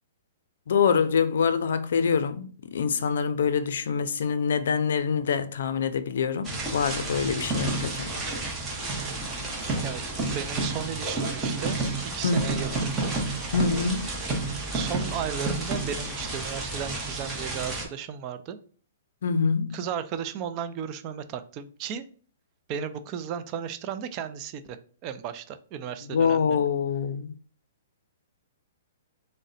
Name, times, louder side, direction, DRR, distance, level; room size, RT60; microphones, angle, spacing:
voice 1, 0.7-8.1 9.6-9.8 12.2-12.4 13.5-14.1 19.2-19.8 26.1-27.3, left 6 dB, 70° left, 0.4 m, -25 dB
sound 1, 6.4-17.8, right 2 dB, 15° right, 0.8 m, -30 dB
voice 2, 9.6-10.0 10.3-11.8 12.0-13.1 14.7-18.6 19.7-22.1 22.7-24.8 25.0-26.6, right 8 dB, 30° right, 0.3 m, -35 dB
3.7 x 2.1 x 4.0 m
hypercardioid pair, 155°, 0 cm